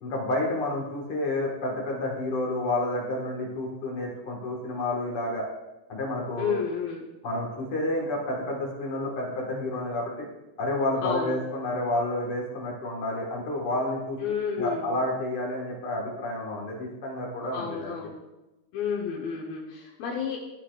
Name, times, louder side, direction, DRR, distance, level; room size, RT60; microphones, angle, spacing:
voice 1, 0.0-5.4 5.9-6.6 7.2-10.0 10.6-14.2 14.6-17.9, left 1 dB, 50° left, -2 dB, 1.8 m, -30 dB
voice 2, 6.4-7.1 11.0-11.3 14.2-14.9 17.5-18.2 18.7-20.4, left 6 dB, 75° left, -2 dB, 2.6 m, -31 dB
12.5 x 8.6 x 2.3 m, 1.0 s
omnidirectional pair, 4.3 m